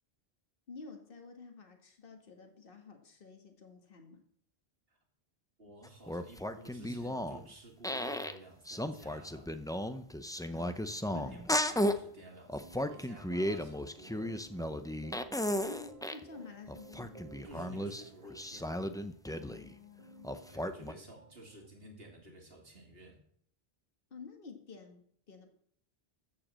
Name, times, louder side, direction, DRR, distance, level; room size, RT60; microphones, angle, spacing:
voice 1, 0.7-4.2 10.5-11.4 15.5-17.2 19.3-20.3 24.1-25.5, left 5 dB, 60° left, 4 dB, 1.7 m, -51 dB
voice 2, 5.6-9.6 11.1-14.3 15.6-15.8 17.4-18.8 20.3-23.2, right 1 dB, 65° right, 1 dB, 2.6 m, -53 dB
sound 1, 5.8-7.5 7.8-8.4 8.7-12.0 12.5-16.2 16.7-19.7 20.2-20.9, left 1 dB, 5° left, 0.3 m, -35 dB
sound 2, 12.6-21.7, right 6 dB, 35° right, 1.1 m, -56 dB
13.5 x 5.1 x 7.4 m, 0.65 s
omnidirectional pair, 1.1 m